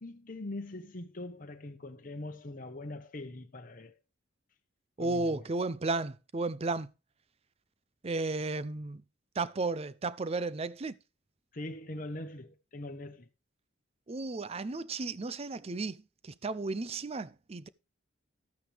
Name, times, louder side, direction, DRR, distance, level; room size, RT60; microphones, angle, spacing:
voice 1, 0.0-3.9 5.0-5.4 11.5-13.3, left 2 dB, 40° left, 1.0 m, -42 dB
voice 2, 5.0-6.9 8.0-9.0 9.4-10.9 14.1-17.7, right 3 dB, 30° right, 0.5 m, -34 dB
13.0 x 9.0 x 3.4 m
head